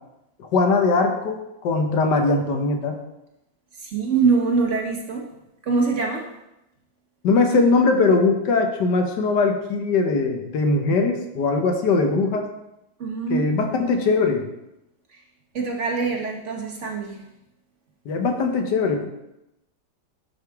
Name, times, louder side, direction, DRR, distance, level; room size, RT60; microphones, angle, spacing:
voice 1, 0.4-3.0 7.2-12.5 13.3-14.4 18.0-19.0, left 3 dB, 80° left, 4 dB, 1.6 m, -21 dB
voice 2, 3.8-5.2 5.6-6.2 13.0-13.5 15.1-15.2 15.5-17.2, right 4 dB, 50° right, 0 dB, 1.1 m, -23 dB
11.0 x 4.8 x 3.5 m, 0.89 s
omnidirectional pair, 1.8 m